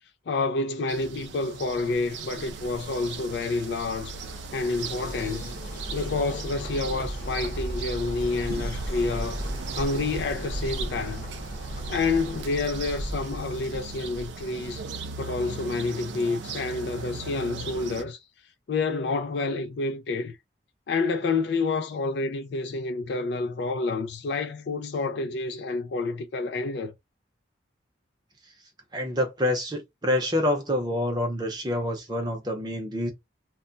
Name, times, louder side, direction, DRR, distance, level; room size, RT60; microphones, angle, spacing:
voice 1, 0.3-4.2 4.5-5.5 5.9-9.4 9.8-11.3 11.9-14.8 15.2-18.2 18.7-20.4 20.9-26.9, left 3 dB, 70° left, 0.4 m, -28 dB
sound 1, 0.9-18.0, right 4 dB, 80° right, 0.4 m, -38 dB
Bird, 3.3-14.7, equal, 45° left, 1.0 m, -37 dB
voice 2, 28.9-33.1, left 1 dB, 20° right, 0.7 m, -27 dB
2.2 x 2.1 x 3.8 m
head